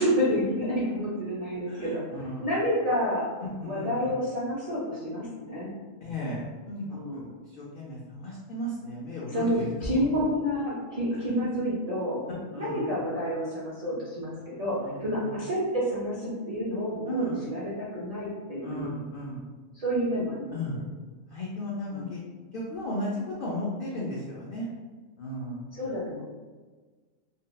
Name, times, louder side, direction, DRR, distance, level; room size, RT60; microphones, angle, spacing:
voice 1, 0.0-2.1 2.4-3.3 3.6-5.8 6.9-7.3 9.3-18.9 19.7-20.8 21.9-22.1 25.7-26.2, equal, 75° right, -7 dB, 0.3 m, -29 dB
voice 2, 1.7-2.6 3.4-4.1 6.0-10.2 11.2-11.3 12.5-12.9 14.8-15.4 17.1-17.5 18.6-19.4 20.5-20.8 21.3-22.2 22.5-24.7 25.2-25.6, equal, 80° left, -5 dB, 0.4 m, -35 dB
3.5 x 2.0 x 2.2 m, 1.4 s
omnidirectional pair, 1.5 m